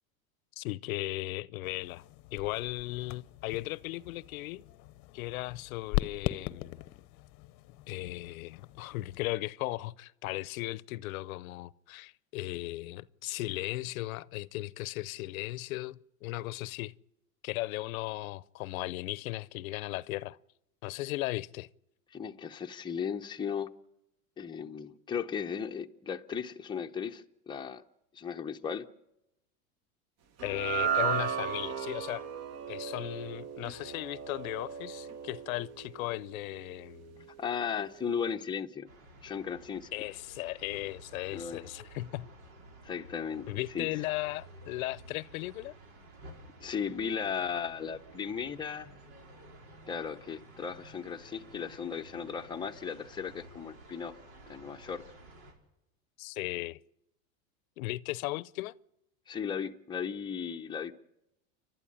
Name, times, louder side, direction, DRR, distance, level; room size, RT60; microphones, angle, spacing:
voice 1, 0.6-2.0 2.3-4.6 5.1-6.8 7.9-16.9 17.4-20.4 20.8-21.7 30.4-32.3 32.7-37.3 39.9-42.3 43.5-45.7 56.2-56.8 57.8-58.7, left 18 dB, 80° left, 0.7 m, -36 dB
sound 1, 1.6-9.4, left 18 dB, 50° left, 0.8 m, -40 dB
voice 2, 22.1-23.7 24.4-27.8 28.1-28.8 37.4-38.9 39.2-39.9 41.3-41.6 42.8-43.5 43.7-43.9 46.6-48.9 49.9-54.2 54.5-55.0 59.3-60.9, left 7 dB, 10° left, 0.7 m, -36 dB
sound 2, 30.4-36.8, right 7 dB, 40° right, 1.2 m, -35 dB
sound 3, 38.9-55.5, right 1 dB, 80° right, 5.4 m, -53 dB
29.5 x 12.0 x 8.7 m
supercardioid pair, 130°, 41 cm